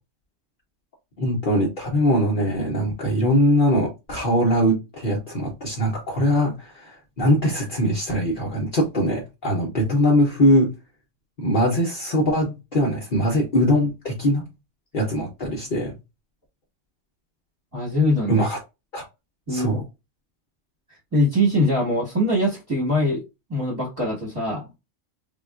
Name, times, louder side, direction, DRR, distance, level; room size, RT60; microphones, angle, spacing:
voice 1, 1.2-10.7 11.4-14.4 14.9-15.9 18.3-18.6 18.9-19.0 19.5-19.8, equal, 50° left, 0.8 m, -21 dB
voice 2, 17.7-18.4 19.5-19.8 21.1-23.2 23.5-24.7, left 1 dB, 15° right, 1.1 m, -22 dB
3.5 x 2.3 x 2.3 m
omnidirectional pair, 1.3 m